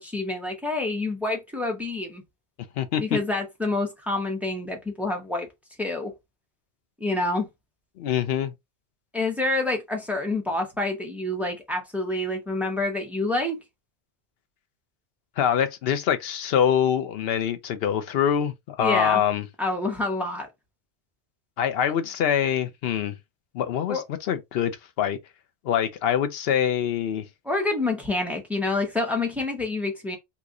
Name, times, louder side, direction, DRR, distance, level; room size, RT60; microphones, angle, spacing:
voice 1, 0.0-2.2 3.0-5.5 5.8-6.1 7.0-7.5 9.1-13.6 18.8-19.2 19.6-20.5 23.9-24.0 27.4-30.2, left 2 dB, ahead, 0.8 m, -27 dB
voice 2, 8.0-8.5 15.4-19.5 21.6-23.2 23.5-24.0 24.3-25.2 25.6-27.3, left 9 dB, 65° left, 0.8 m, -24 dB
3.0 x 2.5 x 3.6 m
omnidirectional pair, 1.1 m